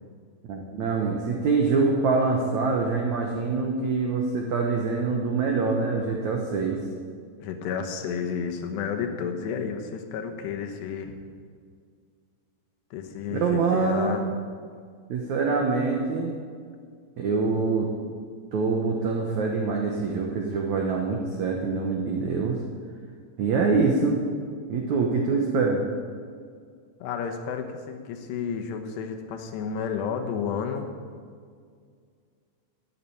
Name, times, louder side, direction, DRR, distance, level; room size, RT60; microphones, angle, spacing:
voice 1, 0.5-6.8 13.3-14.2 15.1-16.3 17.2-17.9 18.5-22.6 23.4-24.2 24.7-25.8, right 4 dB, 80° right, 1 dB, 1.6 m, -25 dB
voice 2, 7.4-11.1 12.9-14.3 27.0-30.9, left 6 dB, 75° left, 5 dB, 3.1 m, -31 dB
12.5 x 7.6 x 9.9 m, 2.1 s
omnidirectional pair, 5.1 m